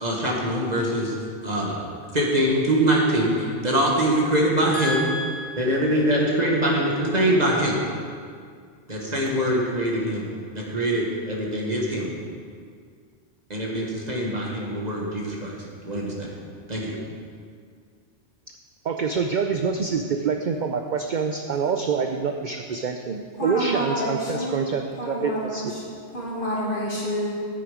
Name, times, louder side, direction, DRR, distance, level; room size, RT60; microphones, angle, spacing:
voice 1, 0.0-1.1 1.4-5.1 5.6-7.8 8.9-10.3 10.5-12.1 13.5-15.6 15.8-16.3 16.7-17.0, right 1 dB, 35° right, -3 dB, 1.5 m, -23 dB
voice 2, 4.7-5.9 23.4-24.7 25.0-25.9 26.1-27.3, equal, 45° left, -5 dB, 2.4 m, -29 dB
voice 3, 18.8-25.7, right 5 dB, 55° right, 5 dB, 0.6 m, -26 dB
9.1 x 8.9 x 5.0 m, 2.1 s
omnidirectional pair, 1.2 m